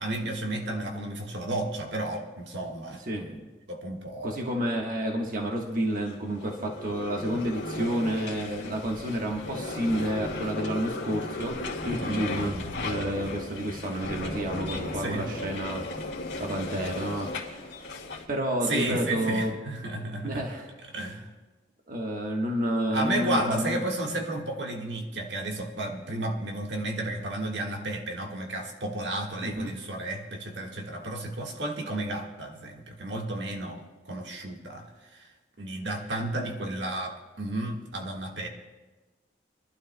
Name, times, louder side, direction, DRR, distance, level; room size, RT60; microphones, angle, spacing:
voice 1, 0.0-3.4 3.7-4.4 12.0-12.7 15.0-15.3 18.7-20.4 20.9-21.3 22.9-33.8 34.0-34.9 35.1-35.3 35.6-38.5, right 1 dB, 75° right, 1 dB, 1.6 m, -32 dB
voice 2, 4.2-11.6 11.8-16.0 16.4-17.7 18.3-19.5 20.2-20.7 21.9-23.8 29.4-29.7, equal, 50° right, 0 dB, 1.2 m, -30 dB
sound 1, 6.1-18.2, left 2 dB, 80° left, 1.7 m, -36 dB
26.0 x 12.0 x 2.2 m, 1.2 s
head